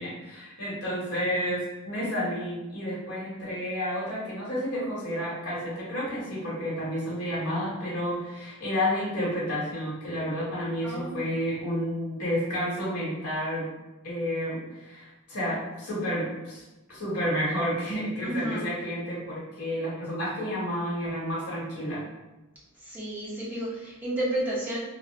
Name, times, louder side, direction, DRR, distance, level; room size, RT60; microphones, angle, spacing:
voice 1, 0.0-13.7 14.0-16.6 16.9-22.0, equal, 85° left, -7 dB, 1.4 m, -30 dB
voice 2, 10.8-11.2 18.2-18.7 22.8-24.8, right 1 dB, 10° right, -8 dB, 0.9 m, -31 dB
3.9 x 2.1 x 2.9 m, 1.0 s
head